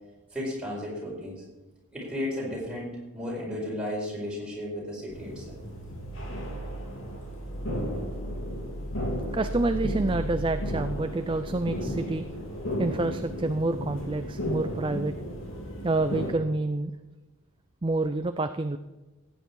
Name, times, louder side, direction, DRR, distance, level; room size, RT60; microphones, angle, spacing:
voice 1, 0.3-1.4 1.9-5.6, left 1 dB, 5° right, -5 dB, 4.7 m, -34 dB
sound 1, 5.1-16.3, equal, 55° left, 3.1 m, -34 dB
voice 2, 9.3-12.2 12.8-15.1 15.8-16.9 17.8-18.8, right 2 dB, 20° right, 9 dB, 0.4 m, -28 dB
15.5 x 9.2 x 4.7 m, 1.1 s
head